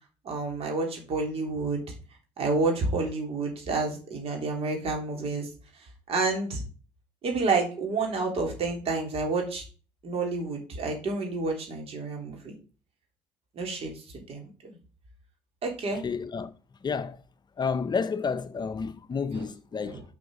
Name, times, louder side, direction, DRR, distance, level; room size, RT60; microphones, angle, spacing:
voice 1, 0.2-1.8 2.4-5.5 6.1-6.6 7.2-9.6 10.0-12.5 13.5-14.5 15.6-16.0 19.3-19.4 19.8-20.0, right 3 dB, 55° right, 3.3 m, -29 dB
voice 2, 16.0-16.5 16.8-17.2 17.6-20.0, left 5 dB, 40° left, 0.7 m, -30 dB
6.2 x 5.9 x 4.9 m
supercardioid pair, 65°, 12 cm